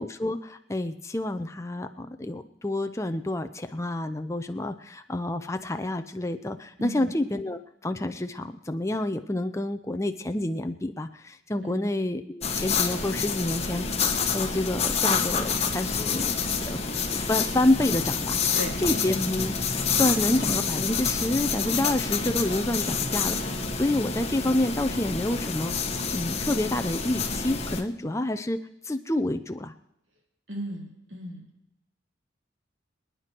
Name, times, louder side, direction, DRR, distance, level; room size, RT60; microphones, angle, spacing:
voice 1, 0.0-13.8 14.1-16.3 16.7-16.8 17.1-18.5 18.8-25.7 26.1-28.6 28.8-29.7, left 1 dB, 15° left, 7 dB, 0.7 m, -28 dB
voice 2, 6.8-7.1 11.6-11.9 18.5-18.8 30.5-31.4, equal, 70° right, 0 dB, 4.0 m, -36 dB
sound 1, 12.4-27.8, left 5 dB, 35° left, 1.4 m, -28 dB
27.0 x 9.6 x 4.6 m, 0.84 s
head